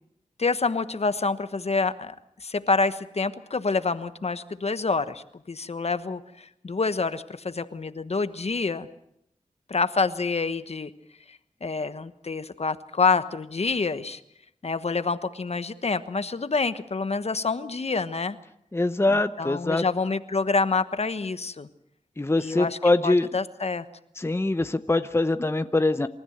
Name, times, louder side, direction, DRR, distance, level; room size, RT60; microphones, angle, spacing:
voice 1, 0.4-8.9 9.7-10.9 11.3-14.2 14.6-18.4 19.1-21.7 22.3-22.8 23.0-23.9, left 4 dB, 50° left, 12 dB, 1.2 m, -27 dB
voice 2, 18.7-19.8 22.2-23.3 24.2-26.1, left 2 dB, 20° left, 10 dB, 0.9 m, -23 dB
28.0 x 14.0 x 8.0 m, 0.78 s
cardioid pair, 60°, 13 cm